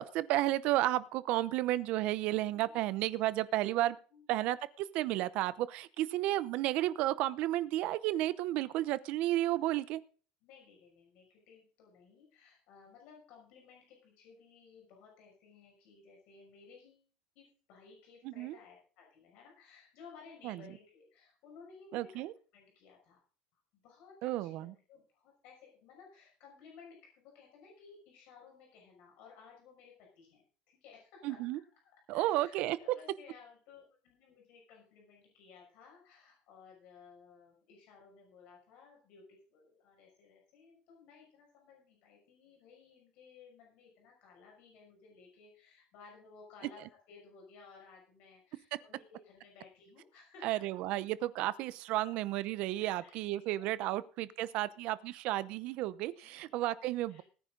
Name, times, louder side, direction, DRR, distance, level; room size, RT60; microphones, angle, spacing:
voice 1, 0.0-4.0 4.3-10.0 18.2-18.6 20.4-20.6 21.9-22.3 24.2-24.7 31.2-31.6 32.1-32.8 50.4-57.2, right 15 dB, 45° right, 16 dB, 0.8 m, -32 dB
voice 2, 2.5-2.8 4.1-4.3 6.1-6.3 10.4-17.1 17.3-22.2 22.5-23.2 23.7-31.5 32.1-50.7 52.0-52.1 52.8-54.0 56.2-56.6 57.1-57.2, left 5 dB, 50° left, 0 dB, 6.2 m, -58 dB
18.5 x 9.8 x 3.9 m, 0.39 s
cardioid pair, 180°, 3 cm